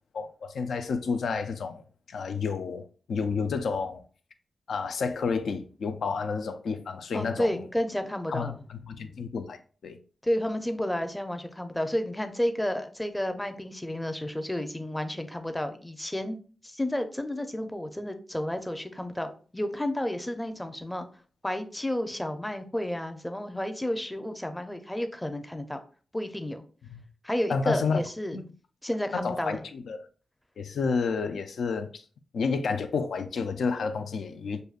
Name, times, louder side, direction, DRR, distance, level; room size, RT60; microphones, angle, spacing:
voice 1, 0.1-1.8 2.1-2.8 3.1-4.0 4.7-7.7 8.3-10.0 26.9-27.0 27.5-28.0 28.3-28.4 29.1-30.0 30.6-32.0 32.3-34.6, left 5 dB, 90° left, 0.5 m, -30 dB
voice 2, 7.1-8.6 10.2-16.4 16.6-21.1 21.4-25.8 26.1-26.6 27.2-28.4 28.8-29.7, left 1 dB, 10° left, 0.5 m, -31 dB
6.6 x 2.6 x 2.4 m
wide cardioid pair, 110°, 0 cm